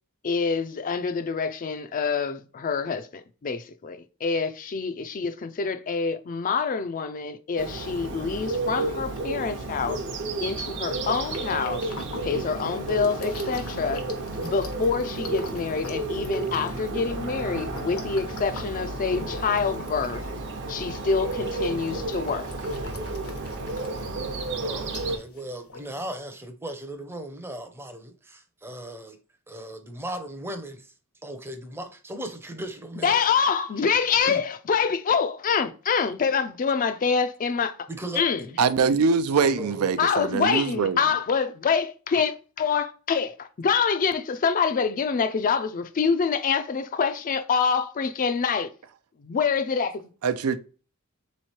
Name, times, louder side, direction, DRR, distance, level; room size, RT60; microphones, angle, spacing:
voice 1, 0.2-10.0 10.4-11.9 12.2-14.0 14.4-20.2 20.7-22.5 33.0-37.8 38.2-38.5 40.0-48.7 49.2-50.0, left 5 dB, 40° left, 0.4 m, -26 dB
Bird, 7.6-25.2, right 2 dB, 55° right, 0.8 m, -32 dB
sound 1, 10.4-26.2, left 3 dB, 80° left, 1.0 m, -44 dB
voice 2, 24.6-29.2 29.5-30.9 31.2-33.2 34.2-34.4 37.9-38.5 39.3-39.9, right 1 dB, 10° right, 0.6 m, -37 dB
voice 3, 38.6-41.0 50.2-50.6, right 5 dB, 75° right, 0.4 m, -23 dB
3.6 x 3.1 x 4.2 m
head